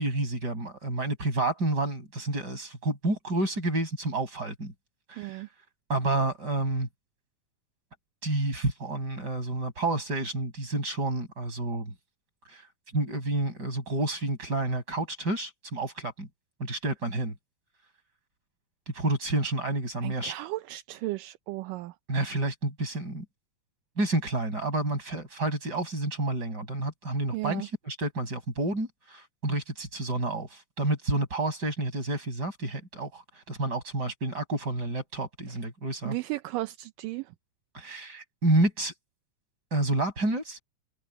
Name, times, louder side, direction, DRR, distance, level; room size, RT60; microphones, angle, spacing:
voice 1, 0.0-4.7 5.1-5.4 5.9-6.9 8.2-11.9 12.4-12.7 12.9-16.3 16.6-17.3 18.9-20.3 22.1-23.2 24.0-36.2 37.7-38.9 39.7-40.6, right 2 dB, 30° right, 6.6 m, -29 dB
voice 2, 5.2-5.5 20.0-21.9 27.3-27.7 36.1-37.3, right 18 dB, 80° right, 2.3 m, -35 dB
omnidirectional pair, 3.9 m